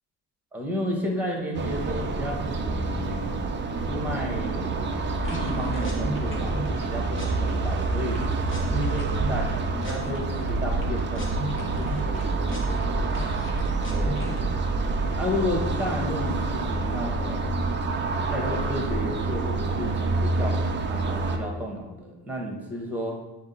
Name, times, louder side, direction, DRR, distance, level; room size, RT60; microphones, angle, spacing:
voice 1, 0.5-3.4 3.9-4.9 5.3-8.2 8.7-13.1 13.9-14.2 15.2-17.5 18.3-23.1, left 1 dB, 5° right, -1 dB, 1.2 m, -32 dB
sound 1, 1.5-21.4, right 3 dB, 25° right, 0.4 m, -28 dB
sound 2, 3.2-18.1, left 1 dB, 85° left, 0.9 m, -38 dB
sound 3, 5.1-6.8 7.2-7.5 7.8-9.5 9.8-12.9 13.1-14.4, equal, 30° left, 1.0 m, -34 dB
5.1 x 2.2 x 4.0 m, 1.1 s
supercardioid pair, 75°, 43 cm